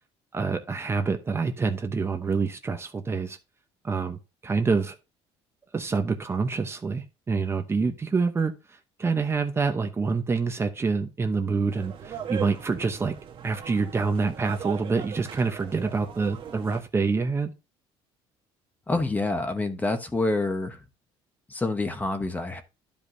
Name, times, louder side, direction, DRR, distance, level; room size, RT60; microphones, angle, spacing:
voice 1, 0.3-3.4 3.8-5.0 5.7-8.5 9.0-13.1 13.4-17.5, right 4 dB, 20° right, 0.8 m, -26 dB
sound 1, 11.7-16.8, right 8 dB, 45° right, 1.2 m, -39 dB
voice 2, 18.9-20.8 21.5-22.6, left 2 dB, 15° left, 1.1 m, -27 dB
11.5 x 5.3 x 2.7 m
cardioid pair, 125°, 12 cm